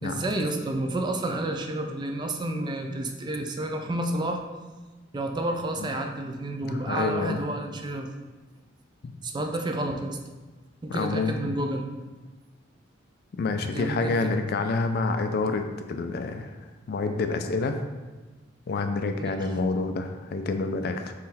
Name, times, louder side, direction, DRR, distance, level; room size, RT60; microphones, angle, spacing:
voice 1, 0.0-4.4 5.1-8.1 9.2-10.2 10.8-11.9 13.7-14.3 19.2-19.4, right 1 dB, 25° right, 4 dB, 0.3 m, -30 dB
voice 2, 6.6-7.4 9.0-9.1 10.9-11.4 13.4-16.6 16.9-17.8 18.7-21.1, left 3 dB, 55° left, 7 dB, 0.3 m, -28 dB
3.8 x 3.1 x 4.1 m, 1.2 s
head